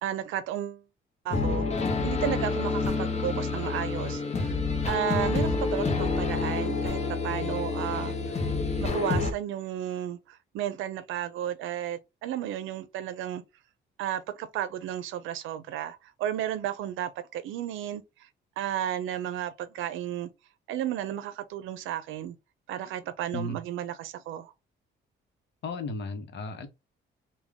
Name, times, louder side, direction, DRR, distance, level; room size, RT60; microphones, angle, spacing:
voice 1, 0.0-0.8 1.2-1.7 2.0-4.6 4.8-8.5 8.8-13.4 14.0-18.3 18.6-20.3 20.7-22.4 22.7-24.5, right 11 dB, 85° right, 0.5 m, -33 dB
sound 1, 1.3-9.3, left 4 dB, 35° left, 0.8 m, -28 dB
voice 2, 25.6-26.7, left 2 dB, 60° left, 0.9 m, -34 dB
3.6 x 2.2 x 3.4 m
cardioid pair, 90°, 20 cm